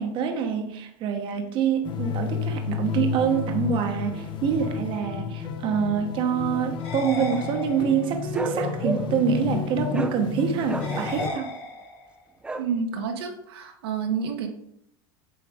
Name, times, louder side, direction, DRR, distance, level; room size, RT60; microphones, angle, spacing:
voice 1, 0.0-11.5, right 7 dB, 40° right, 4 dB, 0.9 m, -26 dB
sound 1, 1.8-11.3, left 6 dB, 35° left, 0.9 m, -31 dB
sound 2, 6.8-8.2 10.8-12.2, left 2 dB, 55° left, 2.2 m, -35 dB
Bark, 8.3-9.2 9.9-10.2 10.7-11.4 12.4-12.7, right 2 dB, 10° right, 0.5 m, -32 dB
voice 2, 12.6-14.5, right 6 dB, 85° right, 3 dB, 1.2 m, -29 dB
7.8 x 4.8 x 3.5 m, 0.75 s
supercardioid pair, 130°, 13 cm